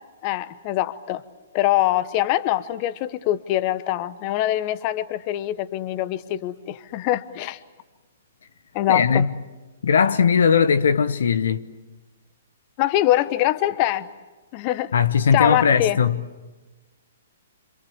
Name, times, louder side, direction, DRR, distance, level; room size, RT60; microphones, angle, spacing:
voice 1, 0.2-1.2 1.5-7.6 8.7-9.3 12.8-14.1 14.5-14.9 15.3-16.0, left 14 dB, 35° left, 1.0 m, -23 dB
voice 2, 8.9-9.3 9.8-11.7 14.9-16.2, left 6 dB, 65° left, 0.9 m, -19 dB
27.5 x 27.0 x 7.3 m
figure-of-eight pair, 120°, 0 cm